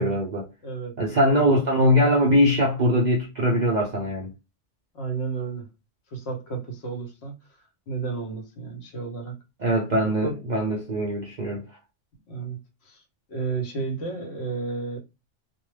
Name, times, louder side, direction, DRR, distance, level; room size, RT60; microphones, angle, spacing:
voice 1, 0.0-0.5 1.0-4.3 9.6-11.6, equal, 55° right, 0.5 m, -22 dB
voice 2, 0.6-0.9 1.3-1.5 4.9-5.7 6.1-9.4 10.2-10.4 12.3-15.0, right 4 dB, 60° left, 1.0 m, -32 dB
2.3 x 2.1 x 3.2 m
omnidirectional pair, 1.3 m